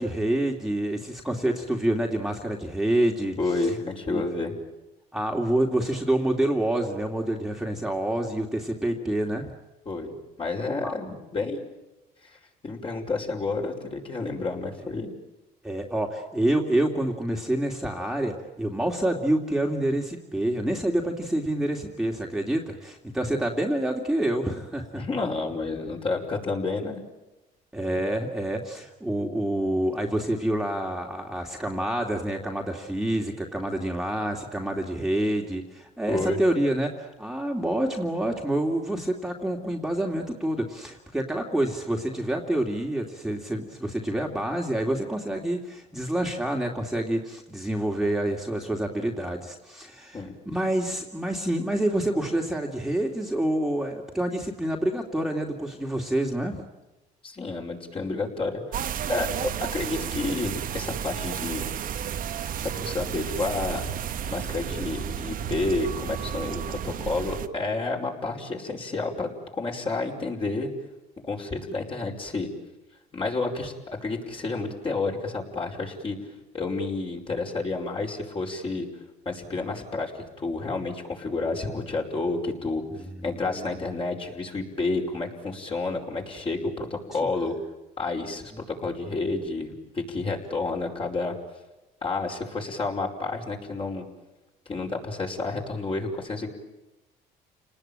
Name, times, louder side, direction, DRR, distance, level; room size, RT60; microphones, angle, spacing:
voice 1, 0.0-3.3 3.6-3.7 4.1-4.2 5.1-9.5 10.8-10.9 15.6-25.0 27.7-56.6 82.9-83.6, right 1 dB, ahead, 0 dB, 2.6 m, -27 dB
voice 2, 3.4-4.5 9.9-11.6 12.2-15.1 24.9-27.0 36.1-36.4 50.1-50.3 57.2-61.7 62.7-63.9 64.3-70.7 71.2-72.5 73.1-73.7 74.0-76.2 76.5-78.9 79.3-82.8 83.2-87.5 88.0-91.3 92.0-94.0 94.7-96.5, left 3 dB, 30° left, 1 dB, 5.2 m, -30 dB
sound 1, 58.7-67.5, right 9 dB, 55° right, 1.3 m, -32 dB
29.5 x 19.5 x 9.0 m, 1.0 s
cardioid pair, 110°, 17 cm